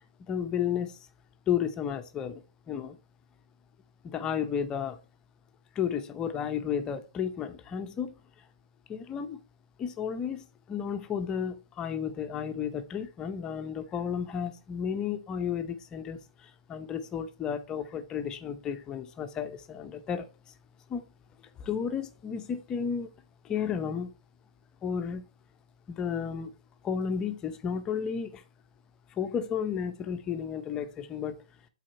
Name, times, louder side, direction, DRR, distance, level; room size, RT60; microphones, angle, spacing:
voice 1, 0.2-1.0 1.5-2.4 2.7-3.0 4.0-5.0 5.7-8.2 8.9-9.4 9.8-20.3 20.9-21.0 21.6-23.1 23.4-24.1 24.8-25.2 25.9-26.5 26.8-28.4 29.1-31.4, left 7 dB, 20° left, 0.8 m, -32 dB
7.6 x 4.2 x 4.2 m
hypercardioid pair, 125°, 3 cm